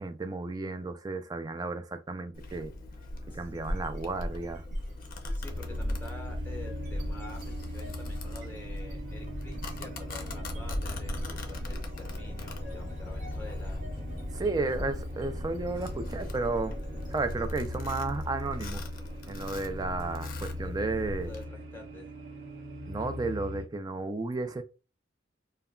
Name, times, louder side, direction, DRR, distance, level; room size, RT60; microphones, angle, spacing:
voice 1, 0.0-2.7 3.3-4.6 14.3-16.8 17.1-18.8 19.3-21.3 22.9-24.6, right 3 dB, 20° right, 0.3 m, -33 dB
Domestic sounds home sounds, 2.3-21.4, left 1 dB, 50° left, 0.5 m, -39 dB
sound 1, 3.5-4.0 4.3-20.9, equal, 45° right, 0.7 m, -47 dB
voice 2, 5.3-13.8 14.5-14.7 18.1-18.2 20.6-20.7 21.2-22.1, left 2 dB, 10° left, 0.8 m, -48 dB
sound 2, 5.5-23.7, left 1 dB, 75° right, 1.1 m, -40 dB
2.2 x 2.1 x 3.6 m
head